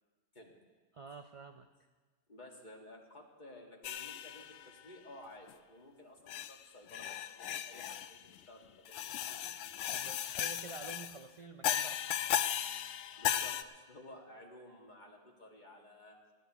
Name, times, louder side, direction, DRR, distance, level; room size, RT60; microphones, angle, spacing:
voice 1, 0.9-1.7 9.9-12.1, right 4 dB, 45° right, 6 dB, 0.4 m, -49 dB
voice 2, 2.3-9.0 9.3-9.4 13.2-16.2, left 1 dB, 40° left, -1 dB, 2.0 m, -54 dB
sound 1, 3.8-4.7 5.5-5.6 6.3-6.6 6.9-8.2 8.9-11.2 11.6-13.6, left 10 dB, 75° left, 0.9 m, -36 dB
20.5 x 16.0 x 3.0 m, 1.4 s
omnidirectional pair, 1.3 m